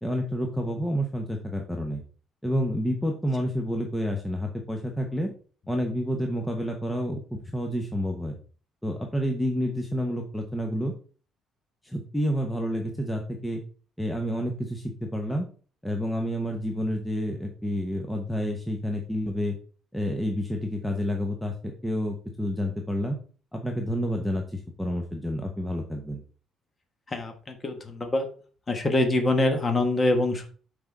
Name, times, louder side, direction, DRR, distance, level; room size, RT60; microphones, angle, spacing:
voice 1, 0.0-2.0 2.4-5.3 5.7-8.4 8.8-10.9 11.8-13.6 14.0-15.5 15.8-19.6 19.9-23.2 23.5-26.2, equal, 5° left, 2 dB, 0.8 m, -29 dB
voice 2, 27.1-28.3 28.7-30.5, left 2 dB, 25° left, 5 dB, 1.3 m, -25 dB
6.0 x 5.0 x 4.5 m, 0.40 s
cardioid pair, 145°, 0 cm